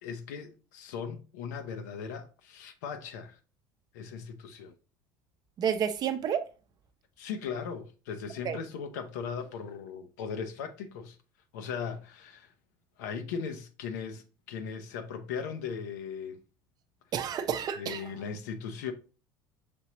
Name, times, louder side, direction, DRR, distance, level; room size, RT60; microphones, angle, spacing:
voice 1, 0.0-3.4 3.9-4.7 7.2-11.2 11.5-12.5 13.0-16.4 17.8-18.9, left 6 dB, 80° left, 0.6 m, -38 dB
voice 2, 5.6-6.4 8.4-8.6 17.1-18.0, right 8 dB, 45° right, 0.6 m, -30 dB
6.1 x 2.9 x 2.9 m
supercardioid pair, 90°, 9 cm